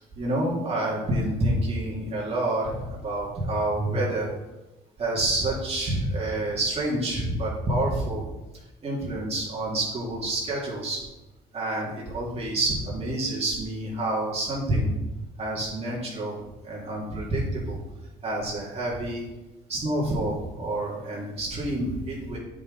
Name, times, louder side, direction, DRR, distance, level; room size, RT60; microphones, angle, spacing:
voice 1, 0.2-4.3 5.0-8.2 8.8-11.0 11.5-14.9 15.4-16.4 16.6-17.8 18.2-19.2 19.7-22.4, right 1 dB, 35° right, -5 dB, 2.3 m, -28 dB
8.4 x 5.5 x 3.9 m, 1.0 s
cardioid pair, 110°, 17 cm